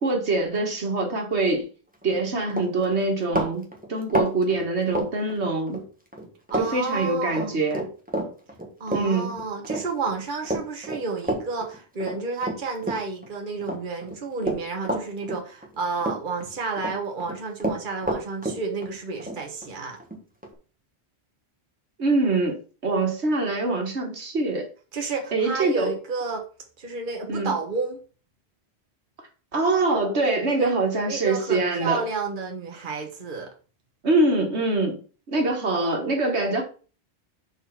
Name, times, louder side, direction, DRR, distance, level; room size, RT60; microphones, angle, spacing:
voice 1, 0.0-1.7 2.0-5.8 6.6-7.9 8.9-9.3 22.0-24.7 25.3-25.9 27.3-27.5 29.5-32.0 34.0-35.0 35.3-36.6, right 2 dB, 85° right, 2.0 m, -24 dB
Run, 2.0-2.2 2.5-5.8 6.1-6.7 6.9-13.3 13.6-15.7 16.0-16.9 17.2-20.5, right 1 dB, 10° right, 1.5 m, -30 dB
voice 2, 6.5-7.6 8.8-20.0 24.9-26.4 26.8-28.0 30.5-33.5, right 4 dB, 50° right, 1.4 m, -31 dB
6.6 x 4.5 x 5.8 m
omnidirectional pair, 1.1 m